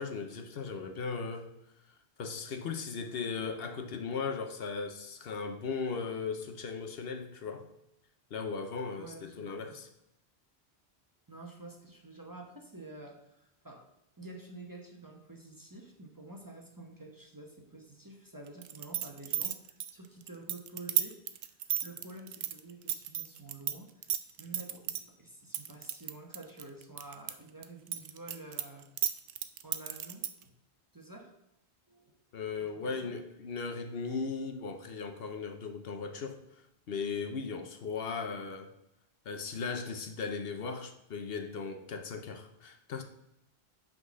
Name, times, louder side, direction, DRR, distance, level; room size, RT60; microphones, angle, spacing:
voice 1, 0.0-1.5 2.2-7.7 8.3-9.9 32.3-36.6 36.9-38.7 39.3-43.0, left 5 dB, 65° left, 6 dB, 0.9 m, -37 dB
voice 2, 9.0-9.8 11.3-13.9 14.2-21.1 21.4-21.5 21.8-24.1 24.4-28.9 29.6-30.5 30.9-31.3 31.9-32.1 32.6-33.1, right 2 dB, 20° right, 1 dB, 0.9 m, -49 dB
sound 1, 18.6-23.7 24.0-25.0 25.5-27.3 27.6-30.4, right 11 dB, 75° right, 0.8 m, -33 dB
5.8 x 3.9 x 6.2 m, 0.83 s
omnidirectional pair, 1.1 m